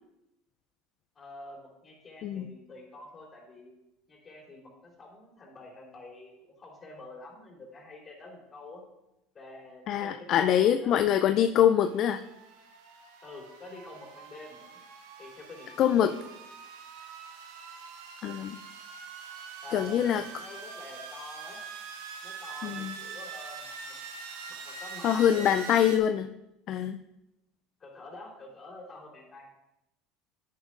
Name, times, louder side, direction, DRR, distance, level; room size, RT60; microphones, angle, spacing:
voice 1, 1.2-3.7 4.1-8.8 9.3-11.0 13.2-14.8 15.2-16.3 19.6-21.6 22.2-24.0 24.5-25.7 27.8-29.5, left 2 dB, 30° left, -1 dB, 3.7 m, -47 dB
voice 2, 9.9-12.2 15.8-16.1 18.2-18.6 19.7-20.2 22.6-22.9 25.0-26.3 26.7-27.0, left 10 dB, 55° left, 8 dB, 0.4 m, -24 dB
sound 1, 11.8-26.0, right 5 dB, 85° right, 1.4 m, -44 dB
10.5 x 9.9 x 2.5 m, 0.91 s
supercardioid pair, 90°, 0 cm